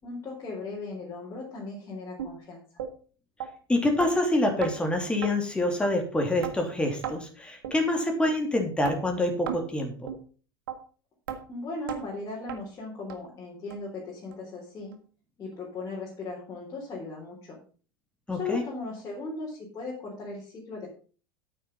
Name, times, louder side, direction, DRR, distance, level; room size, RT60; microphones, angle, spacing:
voice 1, 0.0-2.6 11.5-14.9 15.4-17.6 18.3-20.9, left 3 dB, 25° left, -4 dB, 3.7 m, -37 dB
sound 1, 2.2-2.3 2.8-2.9 3.4-3.5 4.0-4.1 4.6-4.7 5.2-5.3 5.8-5.9 6.4-6.6 7.0-7.2 7.6-7.8 8.3-8.4 8.8-9.0 9.5-9.6 10.1-10.2 10.7-10.8 11.3-11.4 11.9-12.0 12.5-12.6 13.1-13.2 13.7-13.8 14.3-14.4 14.9-15.0, right 9 dB, 60° right, 1.8 m, -35 dB
voice 2, 3.7-9.9 18.3-18.6, left 1 dB, 10° left, 3 dB, 3.0 m, -26 dB
9.1 x 8.8 x 5.4 m, 0.40 s
figure-of-eight pair, 85°, 13 cm